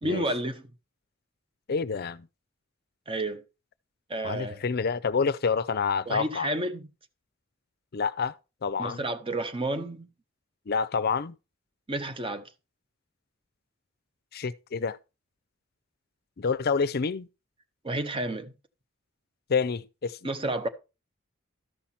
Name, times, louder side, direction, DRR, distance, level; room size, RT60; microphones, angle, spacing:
voice 1, 0.0-0.7 3.1-3.4 4.1-4.6 6.1-6.9 8.8-10.1 11.9-12.5 17.8-18.5 20.2-20.7, right 1 dB, 25° right, 0.8 m, -31 dB
voice 2, 1.7-2.3 4.2-6.5 7.9-8.3 8.6-9.0 10.7-11.3 14.3-15.0 16.4-17.3 19.5-20.2, left 5 dB, 50° left, 0.5 m, -28 dB
13.0 x 5.8 x 4.2 m
head